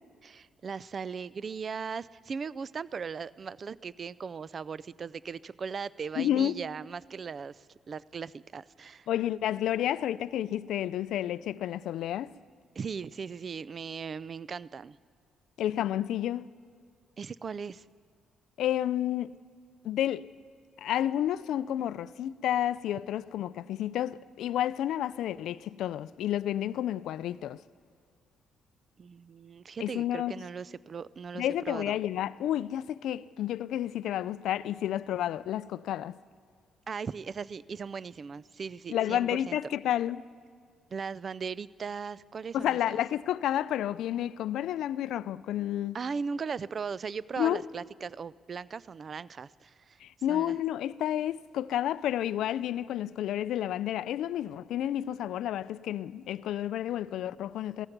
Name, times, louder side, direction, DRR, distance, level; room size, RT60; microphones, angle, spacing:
voice 1, 0.2-9.1 12.8-15.0 17.2-17.8 29.0-32.0 36.9-39.6 40.9-43.0 45.9-50.0 50.3-50.6, right 5 dB, 45° right, 0.4 m, -38 dB
voice 2, 6.2-6.6 9.1-12.3 15.6-16.5 18.6-19.3 19.8-20.3 20.8-27.6 29.8-30.3 31.3-36.2 38.9-40.2 42.5-46.0 47.4-47.6 50.0-57.9, left 11 dB, 80° left, 0.4 m, -30 dB
16.5 x 14.5 x 6.0 m
cardioid pair, 90°, 0 cm